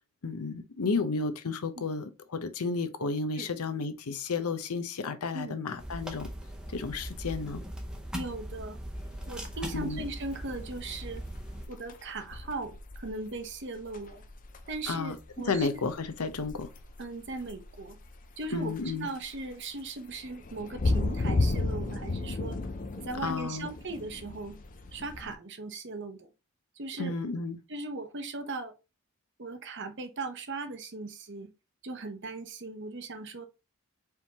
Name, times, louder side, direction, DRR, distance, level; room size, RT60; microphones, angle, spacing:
voice 1, 0.2-6.3 6.7-7.6 9.7-10.0 14.9-15.2 15.5-16.7 18.5-19.1 23.2-23.7 27.0-27.6, left 4 dB, 85° left, 0.7 m, -32 dB
sound 1, 5.8-11.7, equal, 5° right, 0.6 m, -40 dB
voice 2, 8.1-8.8 9.3-11.2 11.7-14.2 14.7-15.8 17.0-18.0 18.4-22.6 23.0-24.5 24.9-26.3 26.8-27.1 27.7-28.7 29.4-31.5 31.8-33.5, right 3 dB, 50° right, 0.8 m, -38 dB
sound 2, 8.9-25.3, left 2 dB, 35° left, 0.5 m, -35 dB
4.5 x 3.6 x 2.8 m
head